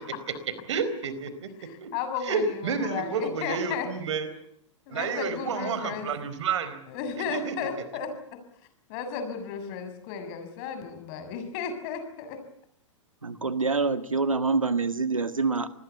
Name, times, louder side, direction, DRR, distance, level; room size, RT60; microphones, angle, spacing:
voice 1, 0.7-1.5 1.8-1.9 2.2-4.3 4.9-6.8 7.2-7.5, right 5 dB, 65° right, 13 dB, 4.4 m, -30 dB
voice 2, 1.6-3.9 4.9-6.2 6.9-8.1 8.9-12.4, left 6 dB, 45° left, 8 dB, 7.3 m, -34 dB
voice 3, 13.2-15.7, right 4 dB, 90° right, 12 dB, 1.7 m, -26 dB
27.0 x 21.0 x 8.4 m, 0.68 s
figure-of-eight pair, 100°, 17 cm